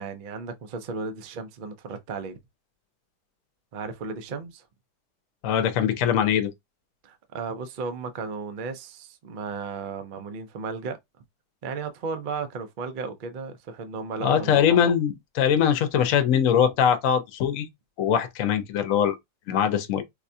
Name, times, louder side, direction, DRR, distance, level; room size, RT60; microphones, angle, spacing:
voice 1, 0.0-2.4 3.7-4.6 7.0-11.0 11.6-14.6, right 4 dB, 70° right, 0.4 m, -34 dB
voice 2, 5.4-6.5 14.2-17.7 18.0-19.2 19.5-20.0, left 8 dB, 60° left, 1.0 m, -22 dB
4.7 x 2.3 x 2.7 m
omnidirectional pair, 1.8 m